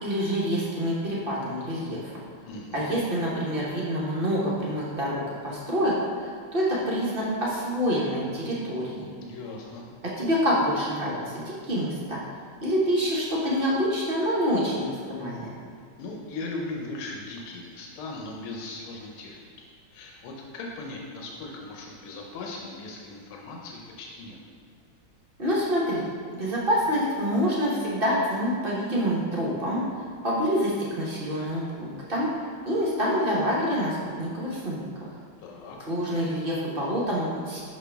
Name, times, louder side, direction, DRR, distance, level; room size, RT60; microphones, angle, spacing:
voice 1, 0.0-2.1 2.7-9.1 10.0-12.2 12.6-15.5 25.4-26.1 26.3-29.8 30.2-32.3 32.6-34.8 35.9-37.6, equal, 40° right, -6 dB, 0.8 m, -27 dB
voice 2, 2.5-3.0 9.2-9.9 16.0-19.7 19.9-24.4 35.4-35.8, left 2 dB, 85° left, -1 dB, 1.6 m, -38 dB
6.1 x 5.5 x 3.4 m, 2.2 s
omnidirectional pair, 2.3 m